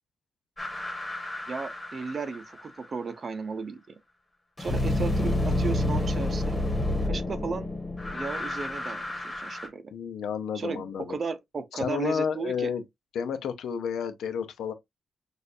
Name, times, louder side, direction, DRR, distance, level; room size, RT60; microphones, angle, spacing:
sound 1, 0.6-2.8 4.6-9.7, left 1 dB, 10° left, 1.3 m, -29 dB
voice 1, 1.5-3.9 4.6-6.6 7.1-7.7 8.1-9.9 10.5-12.7, right 4 dB, 35° right, 0.6 m, -35 dB
voice 2, 9.9-11.2 11.8-12.8 13.1-14.7, left 7 dB, 90° left, 0.7 m, -31 dB
6.5 x 2.5 x 2.6 m
wide cardioid pair, 155°, 0 cm